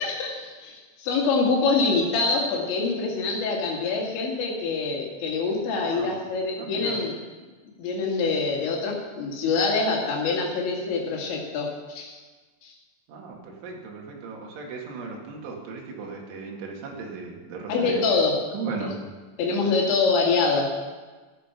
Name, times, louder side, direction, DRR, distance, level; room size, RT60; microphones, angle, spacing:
voice 1, 0.0-7.2 7.8-12.2 12.6-12.7 17.7-18.4 18.8-18.9 19.4-20.7, left 4 dB, 75° left, -1 dB, 4.6 m, -25 dB
voice 2, 5.8-6.1 6.6-7.0 13.1-18.0 18.5-18.9, right 4 dB, 80° right, 0 dB, 4.5 m, -36 dB
14.0 x 12.0 x 6.0 m, 1.3 s
omnidirectional pair, 5.4 m